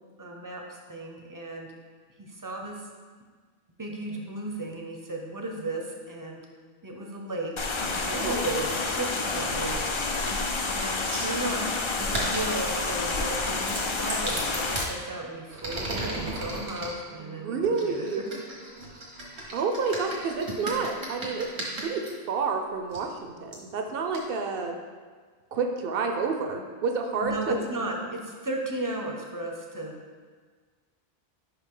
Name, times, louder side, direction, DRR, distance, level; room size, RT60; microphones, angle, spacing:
voice 1, 0.2-1.7 2.2-2.8 3.8-6.4 6.8-9.8 10.7-11.7 12.0-18.3 19.4-19.6 27.2-30.0, right 1 dB, 25° right, 0 dB, 0.5 m, -35 dB
sound 1, 7.6-14.9, left 3 dB, 50° left, 0.3 m, -29 dB
voice 2, 8.1-8.4 17.2-18.2 19.5-21.5 21.7-24.8 25.5-27.5, right 4 dB, 65° right, 4 dB, 0.7 m, -29 dB
sound 2, 11.1-11.3 12.0-12.9 13.6-14.9 15.5-16.9 17.7-22.1 22.9-23.0 23.5-23.6 24.1-24.2, right 2 dB, 90° right, 1.5 m, -35 dB
5.3 x 4.8 x 3.7 m, 1.5 s
omnidirectional pair, 1.1 m